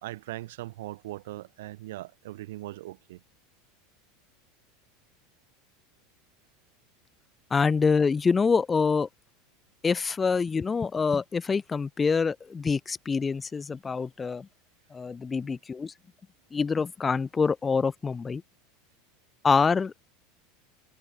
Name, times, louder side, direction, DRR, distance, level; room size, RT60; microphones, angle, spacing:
voice 1, 0.0-3.2 7.6-7.7, right 17 dB, 75° right, 2.6 m, -40 dB
voice 2, 7.5-9.1 9.8-14.5 14.9-15.9 16.5-18.4 19.4-19.9, left 5 dB, 20° left, 0.7 m, -25 dB
hypercardioid pair, 100°, 0 cm